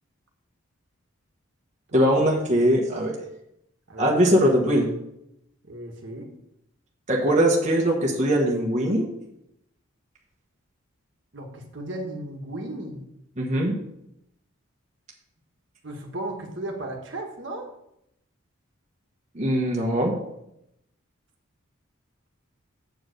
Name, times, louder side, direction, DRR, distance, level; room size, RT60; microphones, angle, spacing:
voice 1, 1.9-3.1 4.0-4.9 7.1-9.1 13.4-13.7 19.3-20.1, equal, 35° right, -2 dB, 1.2 m, -21 dB
voice 2, 3.9-4.3 5.6-6.3 11.3-13.0 15.8-17.7, right 1 dB, 55° right, 2 dB, 1.4 m, -35 dB
7.8 x 4.7 x 6.4 m, 0.79 s
head